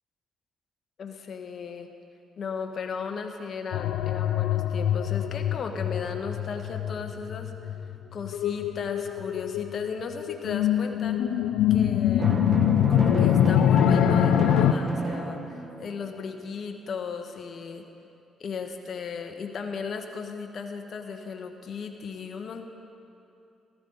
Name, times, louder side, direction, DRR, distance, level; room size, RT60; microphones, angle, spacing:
voice 1, 1.0-1.9 2.4-7.5 8.1-11.2 11.7-12.3 12.9-17.8 18.4-22.7, left 5 dB, 55° left, 5 dB, 1.2 m, -36 dB
sound 1, 3.7-14.7, left 11 dB, 80° left, 0.4 m, -24 dB
Drum, 12.2-16.0, right 3 dB, 35° right, 1.5 m, -31 dB
14.5 x 14.0 x 4.0 m, 2.7 s
supercardioid pair, 70°, 0 cm